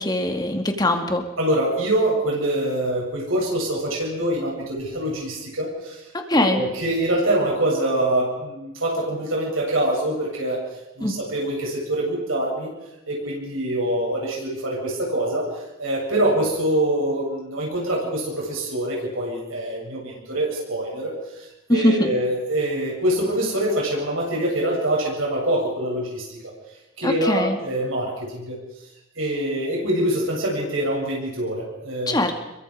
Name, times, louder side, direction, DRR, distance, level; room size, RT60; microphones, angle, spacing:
voice 1, 0.0-1.2 6.1-6.6 11.0-11.1 21.7-22.1 27.0-27.6 32.1-32.3, left 1 dB, 20° left, 4 dB, 2.3 m, -21 dB
voice 2, 1.4-6.0 6.3-10.6 11.0-12.7 13.1-15.5 15.8-21.1 21.7-26.2 27.0-28.6 29.2-32.2, right 1 dB, 80° right, -3 dB, 7.9 m, -24 dB
27.5 x 23.0 x 5.1 m, 0.97 s
head